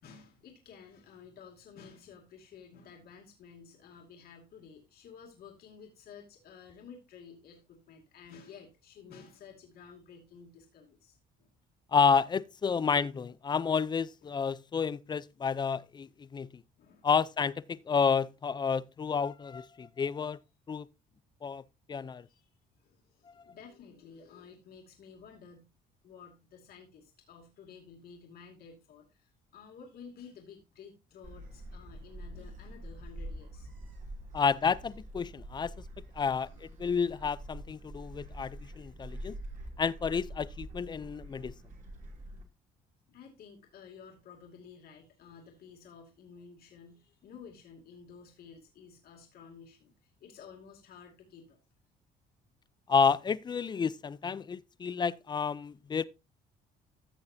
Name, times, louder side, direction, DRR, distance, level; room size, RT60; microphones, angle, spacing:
voice 1, 0.0-11.5 16.8-17.1 22.0-22.5 22.8-25.7 26.0-34.2 36.2-36.7 39.6-39.7 43.1-51.6, left 6 dB, 65° left, 2.6 m, -53 dB
voice 2, 11.9-16.6 17.0-20.4 20.7-20.9 21.4-21.6 21.9-22.3 34.3-35.7 36.2-39.4 39.8-41.5 52.9-56.0, left 6 dB, 25° left, 0.5 m, -30 dB
Gull seagull, 31.2-42.4, right 1 dB, 50° right, 2.9 m, -45 dB
14.5 x 6.5 x 2.7 m
cardioid pair, 110°, 17 cm